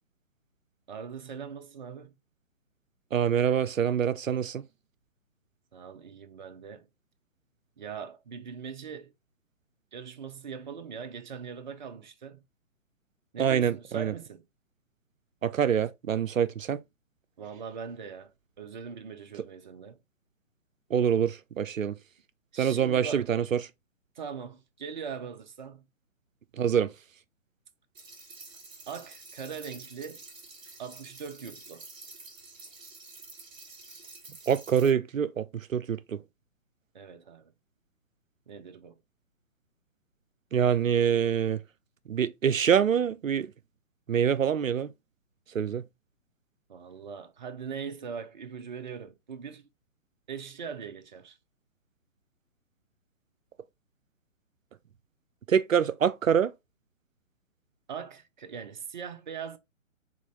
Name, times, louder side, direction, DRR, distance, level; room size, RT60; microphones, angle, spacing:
voice 1, 0.9-2.1 5.7-6.9 7.8-9.1 9.9-12.4 13.3-14.4 17.4-20.0 22.5-23.3 24.2-25.8 28.9-30.2 30.8-31.9 36.9-37.5 38.5-39.0 46.7-49.6 50.3-51.4 57.9-59.6, right 6 dB, 40° right, 0.6 m, -41 dB
voice 2, 3.1-4.6 13.4-14.1 15.4-16.8 20.9-21.9 22.5-23.6 26.6-26.9 34.5-36.2 40.5-41.6 42.1-43.5 44.1-44.9 45.5-45.8 55.5-56.5, right 8 dB, 85° right, 0.5 m, -25 dB
sound 1, 27.9-34.9, right 3 dB, 10° right, 1.3 m, -48 dB
3.7 x 3.7 x 3.1 m
figure-of-eight pair, 130°, 39 cm